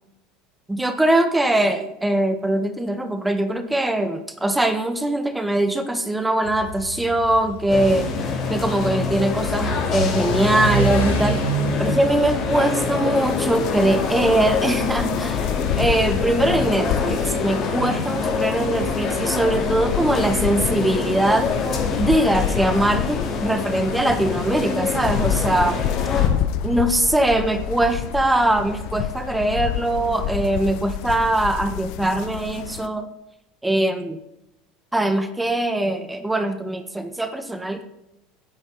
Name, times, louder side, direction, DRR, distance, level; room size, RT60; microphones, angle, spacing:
voice 1, 0.7-8.1 8.5-11.5 11.8-15.5 15.8-21.5 22.0-25.9 26.6-33.1 33.6-34.2 34.9-37.8, right 1 dB, 10° right, 9 dB, 1.5 m, -22 dB
Car / Accelerating revving vroom, 6.5-15.9, equal, 85° left, 6.3 m, -28 dB
sound 1, 7.7-26.3, left 4 dB, 45° left, 3.9 m, -26 dB
sound 2, 13.3-32.9, left 10 dB, 60° left, 0.8 m, -29 dB
10.5 x 9.8 x 9.9 m, 0.89 s
hypercardioid pair, 85°, 0 cm